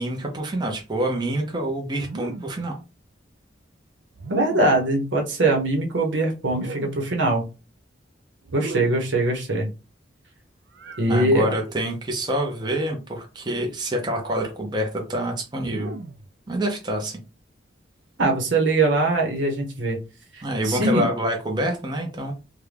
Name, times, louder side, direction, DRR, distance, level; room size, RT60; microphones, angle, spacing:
voice 1, 0.0-2.7 11.1-15.9 16.5-17.2 20.4-22.3, right 1 dB, 25° right, 1 dB, 0.7 m, -26 dB
sound 1, 2.0-2.7 4.1-4.9 6.4-7.2 8.4-9.2 10.7-11.1 12.5-13.0 14.1-14.5 15.6-16.3, right 3 dB, 65° right, 0.4 m, -38 dB
voice 2, 4.3-7.4 8.5-9.7 11.0-11.5 18.2-20.0 20.3-21.1, right 2 dB, 80° right, 2 dB, 1.0 m, -22 dB
3.6 x 2.2 x 3.3 m, 0.30 s
head